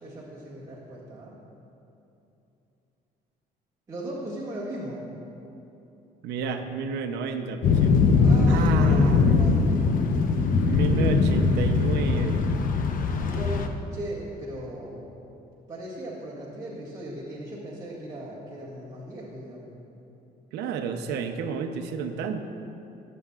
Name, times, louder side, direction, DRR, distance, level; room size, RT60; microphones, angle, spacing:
voice 1, 0.0-1.3 3.9-5.1 8.2-9.8 13.2-15.2 15.7-19.7, right 1 dB, 20° right, -9 dB, 2.1 m, -37 dB
voice 2, 6.2-8.0 8.5-9.5 10.6-12.4 20.5-22.4, right 5 dB, 85° right, 6 dB, 0.8 m, -31 dB
sound 1, 7.6-13.7, left 4 dB, 55° left, 0.8 m, -21 dB
19.5 x 7.9 x 2.5 m, 2.9 s
cardioid pair, 110°, 17 cm